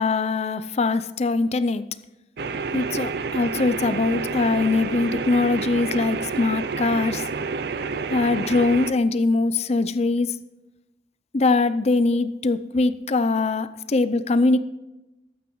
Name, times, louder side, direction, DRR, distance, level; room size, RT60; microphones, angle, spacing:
voice 1, 0.0-1.8 2.7-7.3 8.1-10.4 11.3-14.6, left 3 dB, 40° left, 13 dB, 0.5 m, -22 dB
sound 1, 2.4-8.9, right 4 dB, 65° right, 0.5 m, -29 dB
20.0 x 9.1 x 3.1 m, 0.99 s
head